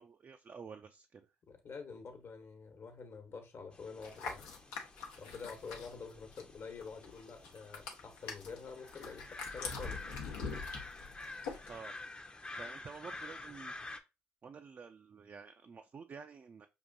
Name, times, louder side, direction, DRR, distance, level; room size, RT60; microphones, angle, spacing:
voice 1, 0.0-1.3 11.7-12.2 12.4-13.7 14.4-16.7, right 5 dB, 40° right, 5 dB, 0.4 m, -50 dB
voice 2, 1.5-4.6 5.2-10.2, left 5 dB, 55° left, 5 dB, 1.1 m, -48 dB
sound 1, 3.7-14.0, left 2 dB, 20° left, 0.6 m, -49 dB
sound 2, 4.0-6.6 6.8-11.8, left 4 dB, 85° left, 0.7 m, -44 dB
5.3 x 2.5 x 2.4 m, 0.26 s
hypercardioid pair, 55°, 5 cm